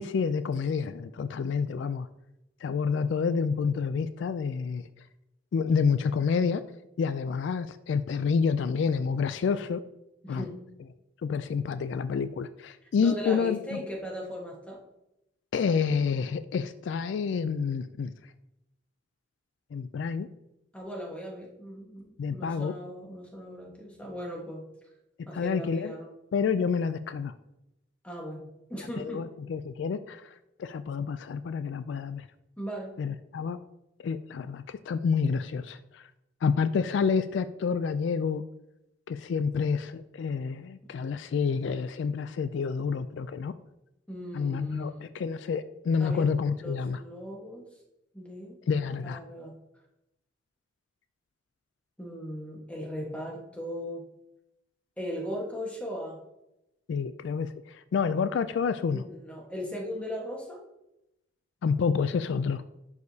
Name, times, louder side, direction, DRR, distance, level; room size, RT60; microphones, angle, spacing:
voice 1, 0.0-2.1 2.6-4.8 5.5-6.6 7.0-9.8 10.3-10.5 11.2-13.8 15.5-18.1 19.7-20.3 22.2-22.7 25.3-25.9 26.3-27.3 29.0-30.3 30.6-32.3 33.0-33.6 34.0-36.1 36.4-38.4 39.1-43.5 44.3-47.0 48.7-49.2 56.9-59.0 61.6-62.6, left 5 dB, 70° left, 12 dB, 0.3 m, -28 dB
voice 2, 10.2-10.6 12.8-14.8 20.7-24.6 25.3-26.1 28.0-29.2 32.6-32.9 44.1-45.1 46.0-46.3 46.6-47.7 48.1-48.5 49.0-49.6 52.0-54.0 55.0-56.2 58.9-60.6, equal, 5° left, -2 dB, 1.3 m, -38 dB
11.0 x 4.8 x 2.7 m, 0.89 s
head